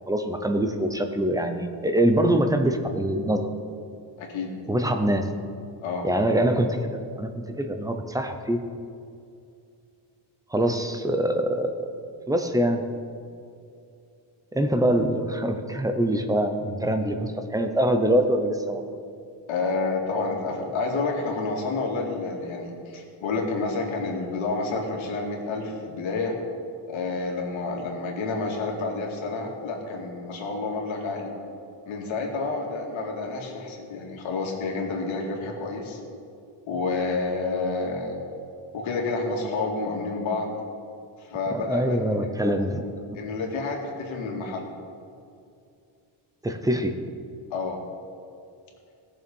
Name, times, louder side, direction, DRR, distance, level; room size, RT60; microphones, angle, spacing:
voice 1, 0.1-3.5 4.7-5.3 6.0-8.6 10.5-11.9 12.3-12.8 14.5-18.9 41.5-42.8 46.4-47.0, right 1 dB, 10° right, 6 dB, 0.5 m, -24 dB
voice 2, 4.2-4.6 5.8-6.1 19.5-26.3 26.9-31.3 31.9-36.0 36.7-38.2 38.7-40.5 41.2-42.0 42.2-42.3 43.1-44.7 47.5-47.8, left 3 dB, 75° left, 0 dB, 2.2 m, -29 dB
17.5 x 6.8 x 5.3 m, 2.5 s
cardioid pair, 175°, 48 cm